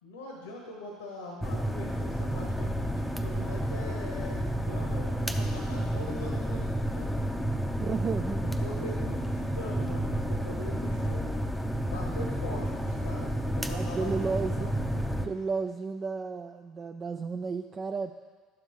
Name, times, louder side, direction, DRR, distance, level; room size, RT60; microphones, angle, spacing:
voice 1, 0.0-7.1 7.9-8.1 8.4-11.3 11.9-14.9, left 1 dB, 80° left, 0 dB, 1.0 m, -42 dB
sound 1, 1.4-15.3, equal, 5° left, 0.7 m, -31 dB
voice 2, 7.8-8.5 13.7-14.7 15.2-18.1, right 4 dB, 35° right, 5 dB, 0.4 m, -33 dB
11.5 x 7.5 x 3.0 m, 1.4 s
figure-of-eight pair, 65°, 0 cm